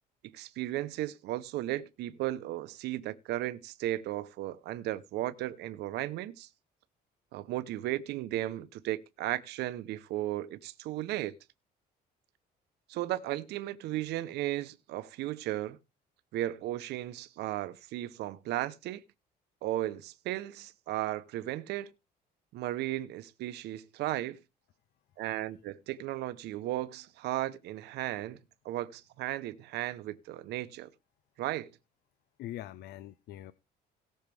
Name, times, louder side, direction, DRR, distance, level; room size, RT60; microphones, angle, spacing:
voice 1, 0.2-6.5 7.3-11.3 12.9-15.8 16.3-19.0 19.6-21.9 22.5-24.4 25.2-28.4 28.6-30.9 31.4-31.7, right 15 dB, 80° right, 0.9 m, -35 dB
voice 2, 32.4-33.5, left 13 dB, 75° left, 0.7 m, -43 dB
18.0 x 6.5 x 3.4 m
cardioid pair, 110°, 17 cm